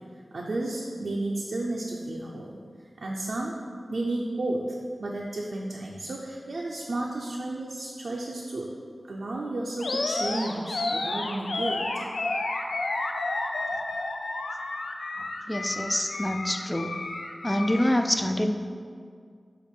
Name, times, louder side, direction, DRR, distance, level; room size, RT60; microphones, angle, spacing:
voice 1, 0.3-2.5 3.0-3.5 3.9-8.7 9.1-11.8, right 2 dB, 75° right, -3 dB, 0.5 m, -32 dB
Animal, 9.8-18.0, left 2 dB, 90° left, 0.4 m, -31 dB
voice 2, 15.5-17.0 17.4-18.5, left 1 dB, 15° left, 6 dB, 0.4 m, -26 dB
7.1 x 2.5 x 5.3 m, 2.1 s
wide cardioid pair, 75°, 0 cm